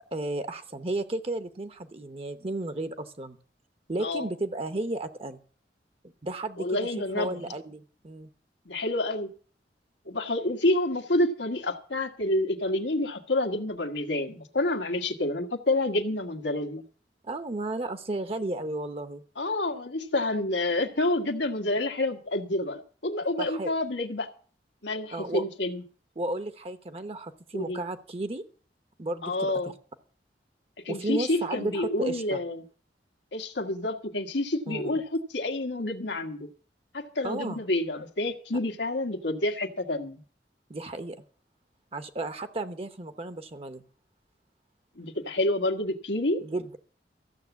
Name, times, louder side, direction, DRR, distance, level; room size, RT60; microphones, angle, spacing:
voice 1, 0.1-3.4 3.9-5.4 6.2-6.9 7.1-8.3 17.2-19.2 23.4-23.7 25.1-25.4 26.2-28.4 29.0-29.7 30.9-32.4 34.7-35.0 37.2-37.6 40.7-41.2 41.9-43.8 46.4-46.8, right 2 dB, 35° right, 9 dB, 0.9 m, -33 dB
voice 2, 6.6-7.4 8.6-9.3 10.0-16.8 19.4-24.3 24.8-25.8 27.5-27.8 29.2-29.7 30.8-32.6 33.3-36.5 36.9-40.2 45.0-46.4, left 1 dB, 90° left, 6 dB, 1.6 m, -28 dB
14.5 x 7.1 x 8.2 m, 0.41 s
head